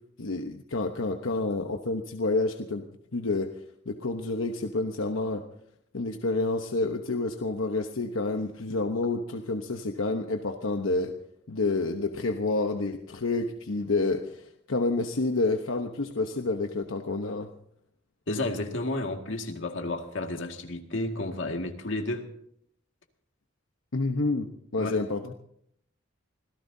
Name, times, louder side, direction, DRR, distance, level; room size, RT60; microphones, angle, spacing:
voice 1, 0.2-2.8 3.1-3.5 3.9-5.4 5.9-11.1 11.5-17.5 23.9-25.3, left 3 dB, 90° left, 5 dB, 1.0 m, -29 dB
voice 2, 18.3-22.3 24.8-25.0, left 2 dB, 70° left, 3 dB, 2.1 m, -31 dB
26.0 x 17.0 x 2.8 m, 0.71 s
head